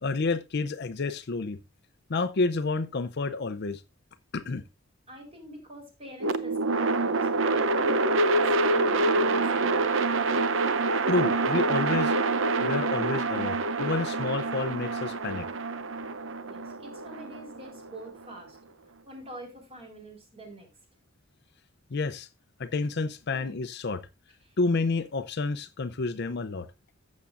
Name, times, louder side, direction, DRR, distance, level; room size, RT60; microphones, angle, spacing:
voice 1, 0.0-1.6 2.1-3.8 4.3-4.6 11.1-12.1 12.6-15.5 21.9-22.3 22.6-24.0 24.6-26.7, left 3 dB, 55° left, 0.6 m, -29 dB
voice 2, 5.1-9.9 16.4-18.6 19.0-20.7 23.4-23.5 24.4-24.5, right 1 dB, 30° right, 4.1 m, -45 dB
sound 1, 6.2-18.3, right 3 dB, 70° right, 0.7 m, -26 dB
14.0 x 7.4 x 2.5 m
head